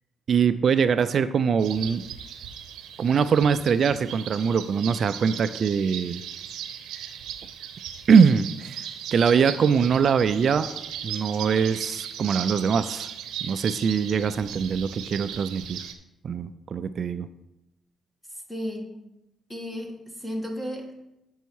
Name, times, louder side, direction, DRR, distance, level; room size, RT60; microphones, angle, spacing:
voice 1, 0.3-2.0 3.0-6.2 8.1-10.7 11.0-13.1 13.4-15.8 16.2-17.3, right 6 dB, 55° right, 12 dB, 0.3 m, -22 dB
sound 1, 1.6-15.9, right 9 dB, 85° right, 0.7 m, -37 dB
voice 2, 18.5-18.9 19.5-21.0, equal, 15° left, 2 dB, 1.7 m, -34 dB
8.1 x 5.4 x 4.6 m, 0.91 s
cardioid pair, 90°, 0 cm